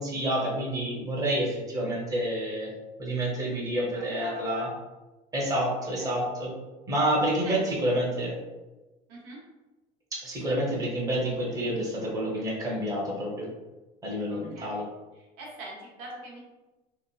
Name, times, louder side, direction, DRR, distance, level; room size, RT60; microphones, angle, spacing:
voice 1, 0.0-2.7 3.0-4.7 5.3-6.5 6.9-8.4 10.1-13.5 14.0-14.8, right 1 dB, 20° right, -4 dB, 0.9 m, -28 dB
voice 2, 3.9-4.7 6.0-6.2 7.4-7.7 9.1-9.4 10.4-10.6 14.3-14.9 15.1-16.4, right 2 dB, 85° right, -4 dB, 1.0 m, -43 dB
2.9 x 2.4 x 2.4 m, 1.1 s
supercardioid pair, 110°, 18 cm